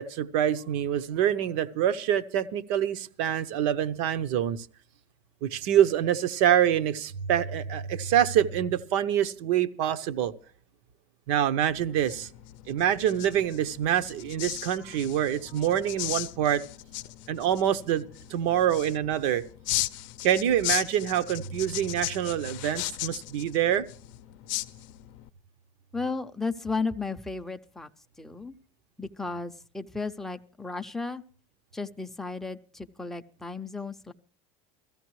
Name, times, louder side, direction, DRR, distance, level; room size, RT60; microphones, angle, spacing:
voice 1, 0.0-4.7 5.4-10.3 11.3-12.3 12.7-16.6 17.3-18.0 18.3-19.4 20.2-23.8, right 10 dB, 70° right, 12 dB, 0.8 m, -26 dB
sound 1, 11.7-25.3, left 17 dB, 70° left, 0.6 m, -37 dB
voice 2, 25.9-27.9 28.2-28.5 29.0-31.2 31.7-34.1, left 4 dB, ahead, 6 dB, 0.5 m, -34 dB
17.0 x 14.0 x 3.1 m, 0.43 s
supercardioid pair, 145°, 17 cm